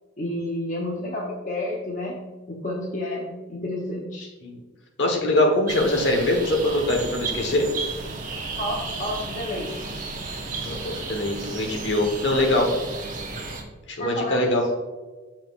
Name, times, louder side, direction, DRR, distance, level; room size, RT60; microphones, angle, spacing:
voice 1, 0.2-2.2 2.5-4.3 8.6-9.9 14.0-14.7, left 1 dB, 40° left, -2 dB, 0.8 m, -30 dB
voice 2, 5.0-7.7 10.6-12.7 13.9-14.7, left 1 dB, 60° left, 2 dB, 1.2 m, -23 dB
sound 1, 5.7-13.6, right 3 dB, 40° right, 1.0 m, -33 dB
7.0 x 5.9 x 2.4 m, 1.3 s
head